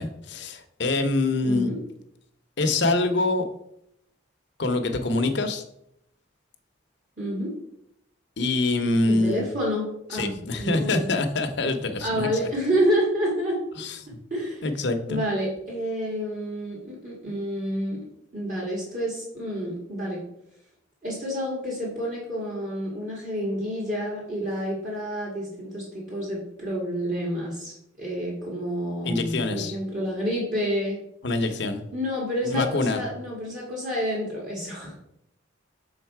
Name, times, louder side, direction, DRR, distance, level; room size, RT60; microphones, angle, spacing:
voice 1, 0.0-1.7 2.6-3.4 4.6-5.6 8.4-9.4 10.1-12.3 13.8-14.2 14.6-15.2 29.0-29.8 31.2-31.8 32.4-33.0, left 2 dB, 60° left, 7 dB, 0.7 m, -25 dB
voice 2, 1.4-1.8 7.2-7.5 9.1-11.1 12.0-13.6 14.3-14.7 15.1-18.0 18.3-20.2 21.0-31.0 31.9-34.9, equal, 40° right, -4 dB, 1.6 m, -29 dB
6.4 x 4.0 x 4.6 m, 0.76 s
head